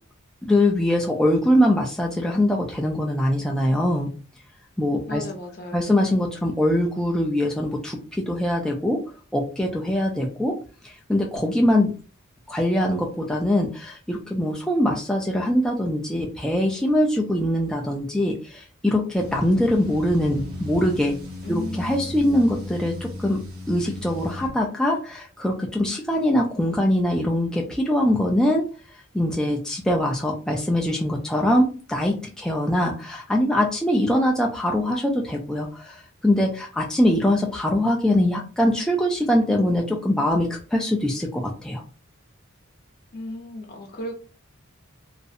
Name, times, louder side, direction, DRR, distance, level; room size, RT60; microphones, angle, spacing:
voice 1, 0.4-4.1 4.8-5.2 5.7-9.0 9.3-10.6 10.8-11.9 12.5-21.2 21.5-23.4 23.7-28.7 29.1-41.8, left 1 dB, 5° left, -1 dB, 0.3 m, -22 dB
voice 2, 5.0-5.9 21.4-22.4 43.1-44.1, left 1 dB, 45° left, 1 dB, 0.7 m, -35 dB
sound 1, 19.2-24.5, left 1 dB, 80° right, 0.9 m, -36 dB
2.4 x 2.0 x 2.6 m, 0.35 s
head